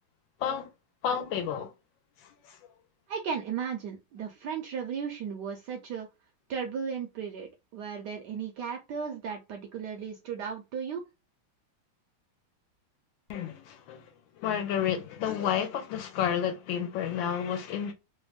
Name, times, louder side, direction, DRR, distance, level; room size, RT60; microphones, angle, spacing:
voice 1, 0.4-0.7 1.0-1.7 2.2-2.6 13.3-14.1 14.4-17.9, left 8 dB, 75° left, 1.3 m, -31 dB
voice 2, 3.1-6.1 6.5-11.0, right 6 dB, 70° right, 1.0 m, -35 dB
3.4 x 2.2 x 2.3 m
omnidirectional pair, 2.3 m